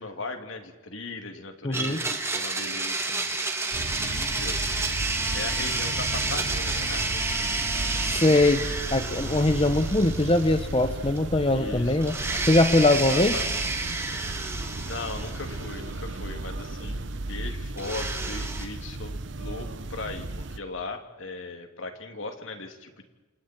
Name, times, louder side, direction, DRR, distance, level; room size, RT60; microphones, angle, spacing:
voice 1, 0.0-3.3 4.0-4.6 5.3-7.6 11.5-12.0 12.9-13.6 14.8-23.0, left 3 dB, 70° left, 5 dB, 2.8 m, -38 dB
voice 2, 1.6-2.0 8.2-8.6 8.9-12.2 12.5-13.4, left 2 dB, 25° left, 9 dB, 0.8 m, -21 dB
Domestic sounds home sounds, 1.7-10.9 11.2-11.3 12.0-15.9 17.8-18.7, right 3 dB, 15° right, 1.9 m, -30 dB
sound 1, 3.7-20.6, right 2 dB, 60° right, 1.0 m, -35 dB
29.5 x 27.5 x 4.5 m, 1.2 s
head